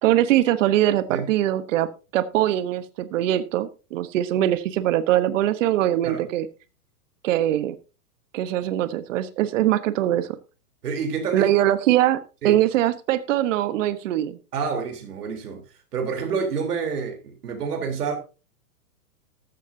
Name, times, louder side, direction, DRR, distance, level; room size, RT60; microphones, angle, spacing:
voice 1, 0.0-1.9 2.1-6.5 7.2-7.7 8.3-10.4 11.3-14.4, right 13 dB, 55° right, 1.2 m, -22 dB
voice 2, 10.8-11.5 12.4-12.6 14.5-15.6 15.9-18.2, right 5 dB, 75° right, 3.7 m, -28 dB
14.0 x 13.0 x 2.7 m
hypercardioid pair, 135°, 46 cm